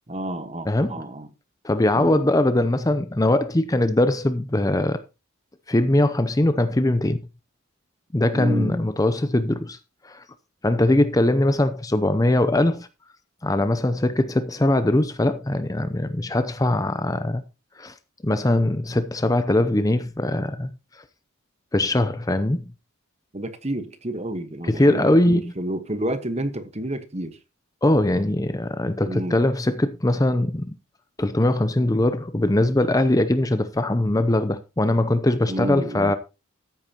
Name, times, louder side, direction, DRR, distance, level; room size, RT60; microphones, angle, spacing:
voice 1, 0.1-1.3 1.9-2.2 8.3-8.8 23.3-27.4 29.1-29.4 35.5-36.1, right 1 dB, 30° right, 1.2 m, -30 dB
voice 2, 0.7-1.0 1.6-5.0 5.7-7.2 8.1-9.8 10.0-10.2 10.6-12.9 13.4-17.4 17.8-17.9 18.2-20.7 21.7-22.7 24.7-25.5 27.8-30.8 31.2-36.2, left 1 dB, 15° left, 0.6 m, -21 dB
14.0 x 8.7 x 2.9 m
head